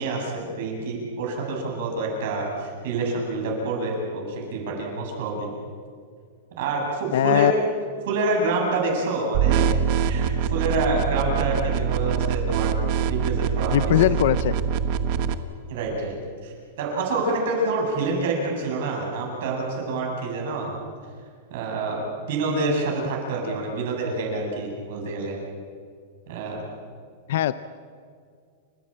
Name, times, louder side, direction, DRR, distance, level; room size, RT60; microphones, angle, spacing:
voice 1, 0.0-5.5 6.6-7.6 8.0-9.7 10.0-12.8 13.1-14.2 15.7-16.1 16.4-20.7 21.5-25.4 26.3-26.6, right 3 dB, 55° right, -1 dB, 7.6 m, -27 dB
voice 2, 7.1-7.5 13.7-14.5 27.3-27.5, left 13 dB, 60° left, 15 dB, 0.6 m, -20 dB
sound 1, 9.3-15.3, right 7 dB, 35° right, 1.1 m, -24 dB
29.5 x 15.5 x 8.9 m, 2.1 s
supercardioid pair, 175°, 0 cm